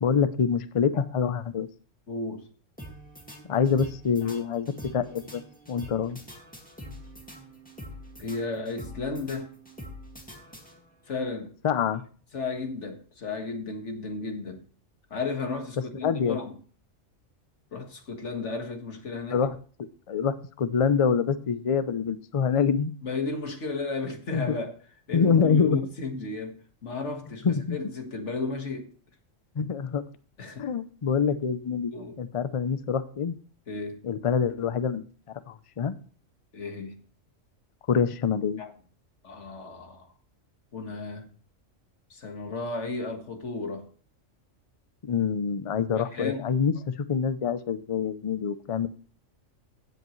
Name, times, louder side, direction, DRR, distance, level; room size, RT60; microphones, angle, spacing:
voice 1, 0.0-1.7 3.5-5.4 5.7-6.2 11.6-12.0 16.0-16.4 19.3-19.5 20.1-22.9 24.3-24.4 25.1-25.8 27.4-27.8 29.6-30.0 30.6-31.9 32.2-33.4 34.0-35.0 35.5-35.9 37.9-38.6 45.0-48.9, left 6 dB, 40° left, 0.4 m, -25 dB
voice 2, 2.1-2.5 4.2-4.5 8.2-9.5 11.1-11.6 12.3-14.6 15.1-16.5 17.7-19.4 23.0-24.8 25.1-28.9 30.4-30.7 31.9-32.2 33.7-34.0 36.5-37.0 38.6-38.7 39.2-40.1 40.7-41.3 42.1-43.9 45.8-46.5, left 3 dB, 60° left, 1.9 m, -34 dB
sound 1, 2.8-11.1, equal, 5° left, 2.0 m, -45 dB
15.0 x 8.0 x 3.2 m
omnidirectional pair, 1.4 m